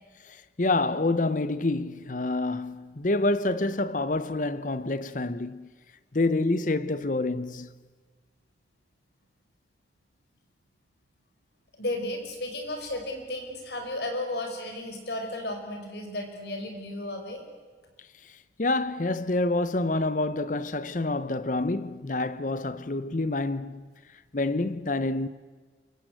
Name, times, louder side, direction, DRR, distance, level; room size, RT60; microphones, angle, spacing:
voice 1, 0.3-5.7 6.1-7.7 18.6-23.9 24.3-25.3, left 2 dB, 45° left, 0.8 m, -27 dB
voice 2, 11.8-17.4, left 1 dB, 65° left, 5.6 m, -34 dB
28.0 x 24.0 x 8.0 m
head